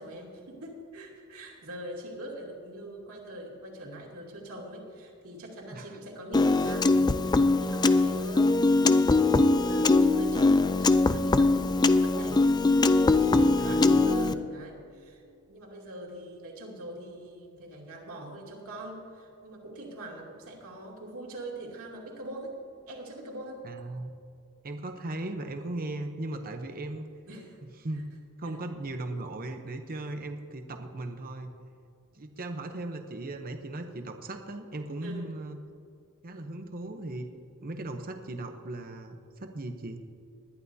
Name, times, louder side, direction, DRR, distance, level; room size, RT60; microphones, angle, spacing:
voice 1, 0.0-12.6 13.1-22.5 22.9-23.6 27.3-27.6 27.9-28.0 28.4-28.6 35.0-35.3, right 1 dB, 70° right, -2 dB, 2.7 m, -43 dB
Piano, 6.3-14.3, left 3 dB, 20° left, 0.3 m, -22 dB
voice 2, 13.6-14.1 23.6-24.1 24.6-27.1 27.8-28.0 28.4-31.5 32.1-35.6 36.2-37.3 37.6-40.1, right 2 dB, 40° right, 5 dB, 0.8 m, -37 dB
20.0 x 12.0 x 2.8 m, 2.5 s
head